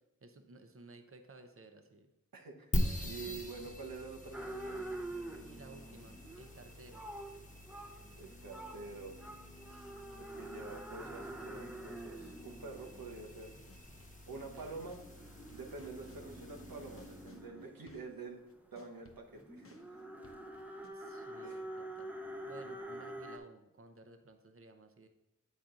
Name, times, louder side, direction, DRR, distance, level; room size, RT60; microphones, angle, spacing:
voice 1, 0.2-2.1 3.3-3.4 5.4-7.1 14.3-14.9 16.0-16.6 20.9-22.1 22.4-25.1, right 2 dB, 40° right, 7 dB, 0.7 m, -56 dB
voice 2, 2.3-2.7 3.0-4.8 8.2-9.2 9.7-13.6 14.3-15.0 15.5-18.4 18.7-19.7 21.4-21.7, right 3 dB, 90° right, 1 dB, 1.1 m, -47 dB
sound 1, 2.7-17.4, equal, 20° left, 1.1 m, -44 dB
sound 2, 4.3-23.4, right 1 dB, 5° right, 0.7 m, -47 dB
sound 3, 12.8-15.1 15.5-20.9, left 2 dB, 40° left, 0.7 m, -62 dB
8.9 x 4.2 x 3.8 m, 0.88 s
wide cardioid pair, 55°, 34 cm